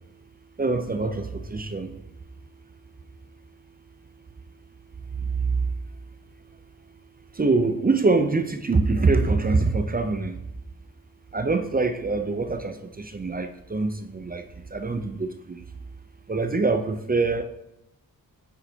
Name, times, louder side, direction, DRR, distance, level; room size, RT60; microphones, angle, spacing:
voice 1, 0.6-1.9 7.4-10.4 11.3-14.4 14.7-15.6 16.3-17.4, right 3 dB, 25° right, 8 dB, 0.6 m, -24 dB
9.0 x 4.8 x 4.5 m, 0.84 s
wide cardioid pair, 105°, 36 cm